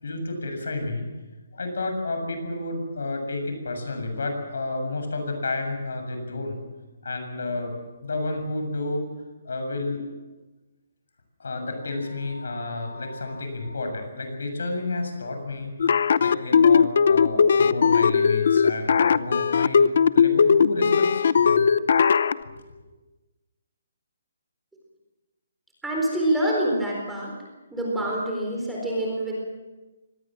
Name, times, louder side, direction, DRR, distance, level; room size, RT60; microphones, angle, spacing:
voice 1, 0.0-1.1 1.5-6.6 7.0-7.7 8.0-9.1 9.4-10.0 11.4-15.7 16.2-21.6 22.4-22.6, left 2 dB, 75° left, 5 dB, 7.2 m, -31 dB
sound 1, 15.8-22.3, left 6 dB, 50° left, 0.7 m, -18 dB
voice 2, 25.8-27.3 27.7-29.3, right 1 dB, 5° right, -3 dB, 4.2 m, -26 dB
25.0 x 18.5 x 7.6 m, 1.2 s
hypercardioid pair, 170°, 0 cm